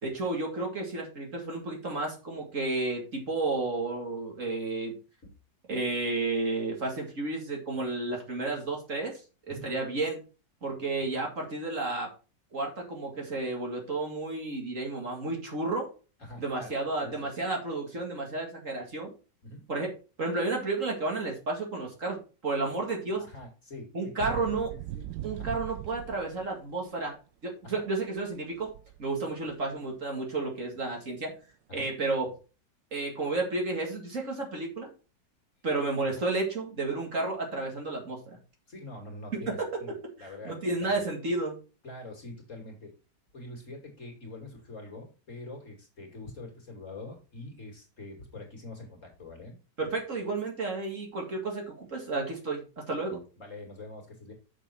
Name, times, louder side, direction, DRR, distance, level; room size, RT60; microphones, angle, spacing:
voice 1, 0.0-5.0 5.7-9.1 9.5-10.2 10.6-12.1 12.5-15.9 16.4-19.1 19.7-19.9 20.2-23.2 23.9-24.7 25.2-27.2 27.4-28.7 29.0-31.3 31.7-32.3 32.9-34.9 35.6-38.4 39.5-39.7 40.2-41.6 49.8-53.2, right 3 dB, 45° right, 1 dB, 2.4 m, -32 dB
voice 2, 16.2-16.7 17.0-17.3 19.4-19.7 23.2-24.4 24.7-25.0 25.4-25.6 27.6-27.9 31.7-31.9 36.1-36.2 38.7-41.1 41.8-42.9 43.3-49.6 53.4-54.3, left 2 dB, 45° left, 1 dB, 2.8 m, -45 dB
sound 1, 24.2-26.6 26.8-26.9 28.2-28.3 28.6-29.2 29.5-29.6, right 14 dB, 85° right, 1.3 m, -40 dB
7.0 x 6.8 x 4.4 m, 0.34 s
omnidirectional pair, 1.9 m